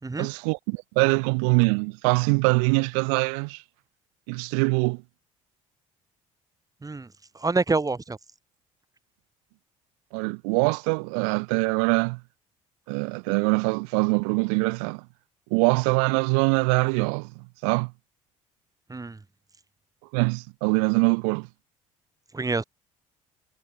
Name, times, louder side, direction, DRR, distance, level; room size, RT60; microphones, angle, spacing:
voice 1, 0.2-3.6 4.3-5.0 10.1-12.2 12.9-15.1 15.5-17.9 20.1-21.5, right 38 dB, 75° right, 2.1 m, -23 dB
voice 2, 7.4-8.2 18.9-19.2 22.3-22.6, right 3 dB, 20° right, 3.5 m, -26 dB
hypercardioid pair, 55°, 17 cm